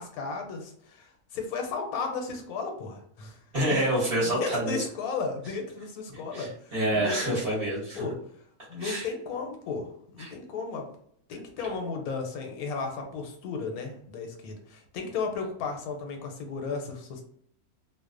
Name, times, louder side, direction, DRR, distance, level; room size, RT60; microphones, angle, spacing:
voice 1, 0.0-3.3 4.2-6.5 6.9-7.4 8.0-8.1 8.7-10.9 11.3-17.2, left 4 dB, 85° left, 3 dB, 1.1 m, -34 dB
voice 2, 3.5-4.7 6.3-8.0 8.8-9.1 10.2-10.3, right 1 dB, 45° right, -7 dB, 1.2 m, -27 dB
2.6 x 2.0 x 2.4 m, 0.67 s
omnidirectional pair, 1.5 m